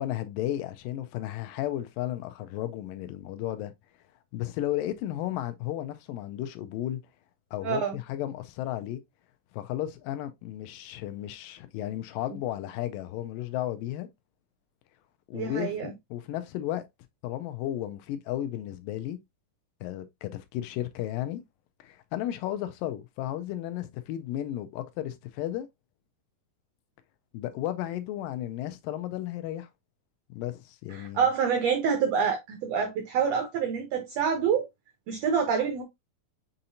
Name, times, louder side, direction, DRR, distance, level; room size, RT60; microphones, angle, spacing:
voice 1, 0.0-3.7 4.3-7.0 7.5-9.0 9.5-14.1 15.3-16.8 17.2-19.2 19.8-21.4 21.8-25.7 27.3-29.7 30.3-31.3, left 13 dB, 85° left, 2.3 m, -34 dB
voice 2, 7.6-8.0 15.3-15.9 30.9-34.6 35.1-35.8, right 6 dB, 90° right, 1.4 m, -27 dB
6.5 x 2.9 x 2.6 m
omnidirectional pair, 3.9 m